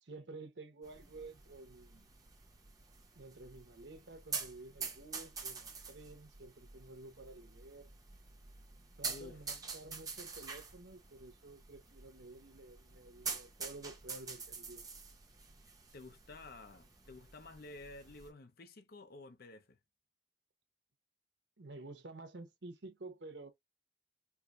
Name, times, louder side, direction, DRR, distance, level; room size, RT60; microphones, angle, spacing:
voice 1, 0.0-2.1 3.1-7.9 9.0-14.8 21.6-23.5, right 2 dB, 80° right, 1.0 m, -51 dB
sound 1, 0.8-18.3, right 5 dB, 20° right, 1.1 m, -47 dB
voice 2, 9.0-9.4 15.9-19.8, left 2 dB, 60° left, 0.7 m, -52 dB
4.7 x 2.7 x 2.5 m
head